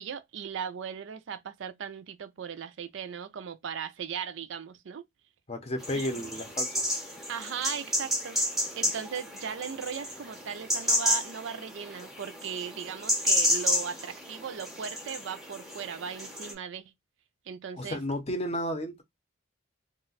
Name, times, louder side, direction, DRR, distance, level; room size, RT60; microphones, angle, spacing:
voice 1, 0.0-5.0 5.9-6.1 7.3-8.4 8.8-16.9 17.5-18.0, right 7 dB, 65° right, 0.4 m, -38 dB
voice 2, 5.5-6.7 17.8-19.0, equal, 30° left, 0.6 m, -32 dB
sound 1, 5.8-16.5, left 1 dB, ahead, 0.7 m, -31 dB
2.4 x 2.1 x 3.8 m
head